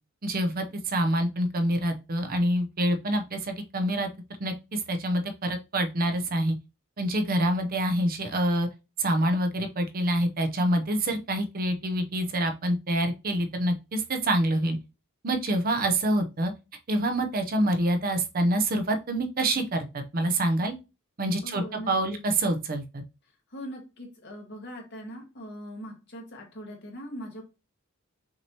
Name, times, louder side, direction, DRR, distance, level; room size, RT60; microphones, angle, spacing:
voice 1, 0.2-4.1 4.4-6.5 7.0-8.7 9.0-14.8 15.2-16.5 16.9-20.8 21.2-23.0, right 1 dB, 45° right, 0.6 m, -26 dB
voice 2, 21.4-22.2 23.5-27.4, equal, 55° left, 1.5 m, -41 dB
6.0 x 2.9 x 2.9 m
head